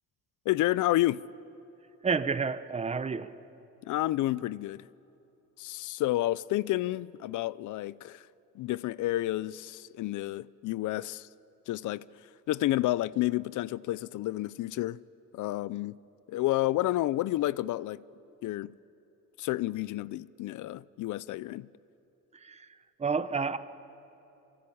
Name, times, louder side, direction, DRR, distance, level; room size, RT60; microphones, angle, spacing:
voice 1, 0.5-1.2 3.9-4.9 5.6-8.3 8.6-11.3 11.7-12.0 12.5-15.0 15.3-16.0 16.3-18.0 18.4-18.7 19.4-21.7, left 16 dB, 65° left, 0.5 m, -30 dB
voice 2, 2.0-3.3 22.3-23.6, right 5 dB, 20° right, 0.7 m, -30 dB
26.5 x 24.0 x 8.6 m
cardioid pair, 155°, 32 cm